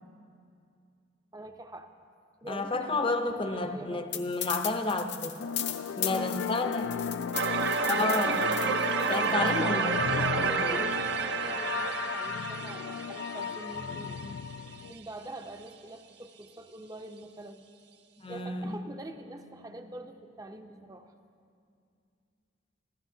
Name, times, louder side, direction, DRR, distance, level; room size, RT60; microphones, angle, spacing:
voice 1, 1.3-1.9 2.4-4.1 6.0-6.4 9.1-14.3 14.9-17.7 18.3-21.1, right 1 dB, 20° right, 6 dB, 0.6 m, -44 dB
voice 2, 2.5-5.4 6.0-6.9 7.9-8.6 9.1-10.8 18.2-18.8, left 2 dB, 25° left, 7 dB, 0.6 m, -31 dB
sound 1, 4.1-9.5, left 11 dB, 60° left, 0.8 m, -36 dB
sound 2, 5.4-14.9, left 6 dB, 80° left, 0.4 m, -35 dB
sound 3, 7.3-14.2, right 5 dB, 60° right, 0.6 m, -30 dB
25.0 x 15.5 x 2.7 m, 2.4 s
head